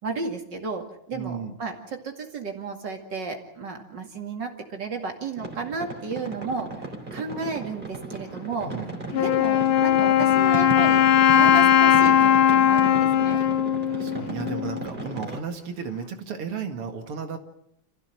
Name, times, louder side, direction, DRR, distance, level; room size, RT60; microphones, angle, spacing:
voice 1, 0.0-8.7 9.1-13.4, right 4 dB, 55° right, 3 dB, 2.9 m, -33 dB
voice 2, 1.1-1.5 8.6-8.9 13.4-13.5 13.9-17.4, right 6 dB, 90° right, 5 dB, 2.9 m, -34 dB
sound 1, 5.4-15.4, right 2 dB, 20° right, 3.6 m, -36 dB
Wind instrument woodwind instrument, 9.1-14.9, left 10 dB, 75° left, 1.9 m, -19 dB
27.5 x 15.5 x 7.6 m, 0.78 s
omnidirectional pair, 2.4 m